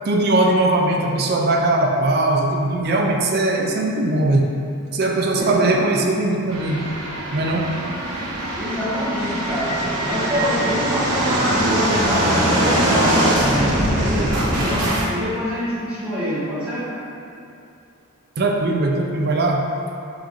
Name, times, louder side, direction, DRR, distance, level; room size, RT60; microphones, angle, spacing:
voice 1, 0.0-4.5 4.9-6.9 7.3-7.8 18.4-19.7, right 2 dB, 45° right, 0 dB, 0.4 m, -20 dB
voice 2, 5.4-5.9 8.6-16.9, equal, 5° right, -11 dB, 0.8 m, -25 dB
sound 1, 6.5-15.1, right 1 dB, 85° right, 0.7 m, -22 dB
4.8 x 3.9 x 2.4 m, 2.6 s
head